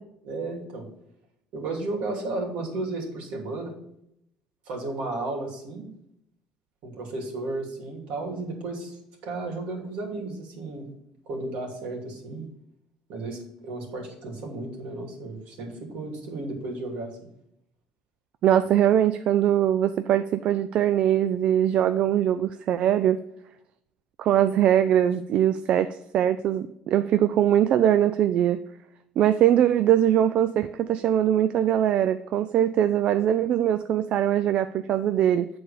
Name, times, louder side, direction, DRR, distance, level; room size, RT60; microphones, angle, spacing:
voice 1, 0.2-0.9 1.5-3.7 4.7-5.9 6.8-10.9 11.3-12.5 13.1-17.1, right 2 dB, 75° right, 0 dB, 2.6 m, -33 dB
voice 2, 18.4-23.2 24.2-28.6 29.2-35.5, right 11 dB, 55° right, 11 dB, 0.4 m, -22 dB
8.6 x 4.3 x 5.0 m, 0.76 s
cardioid pair, 135°, 2 cm